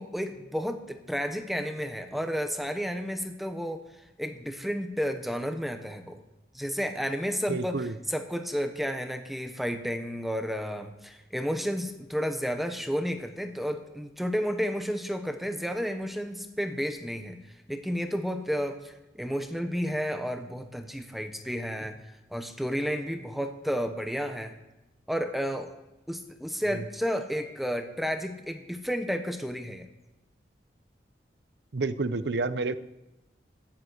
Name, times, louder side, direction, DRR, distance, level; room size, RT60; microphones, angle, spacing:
voice 1, 0.0-3.8 4.2-6.2 6.5-22.0 22.3-24.6 25.1-25.7 26.1-29.9, equal, ahead, 7 dB, 0.9 m, -32 dB
voice 2, 7.5-7.9 26.7-26.8 31.7-32.8, right 3 dB, 70° right, 13 dB, 0.7 m, -29 dB
10.5 x 10.0 x 8.0 m, 0.99 s
head